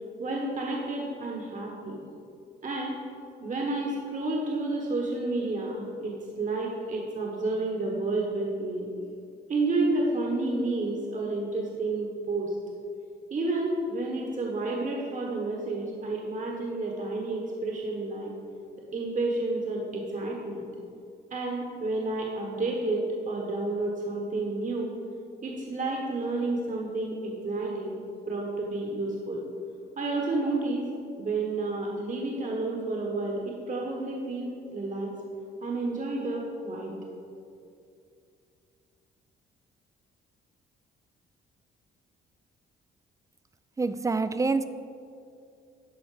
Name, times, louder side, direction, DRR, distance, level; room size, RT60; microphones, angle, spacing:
voice 1, 0.2-2.0 2.6-2.9 3.4-8.9 9.5-12.5 13.3-18.3 18.9-20.7 21.3-24.9 25.4-28.0 28.3-29.4 30.0-30.9 31.2-35.1 35.6-36.9, right 2 dB, 40° right, -1 dB, 1.3 m, -30 dB
voice 2, 43.8-44.7, right 3 dB, 15° right, 12 dB, 0.4 m, -26 dB
11.5 x 4.4 x 4.9 m, 2.5 s
cardioid pair, 90°, 20 cm